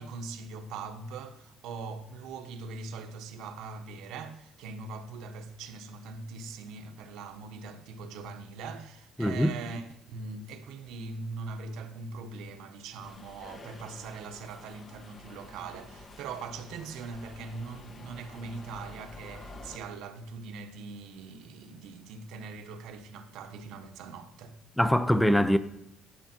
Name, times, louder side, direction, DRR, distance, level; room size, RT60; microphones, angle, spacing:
voice 1, 0.0-24.6, right 4 dB, 75° right, 1.1 m, -41 dB
voice 2, 9.2-9.5 24.8-25.6, equal, 5° left, 0.6 m, -23 dB
Subway metro underground, 13.0-19.8, left 2 dB, 35° left, 1.2 m, -49 dB
17.0 x 7.0 x 4.5 m
cardioid pair, 140°, 0 cm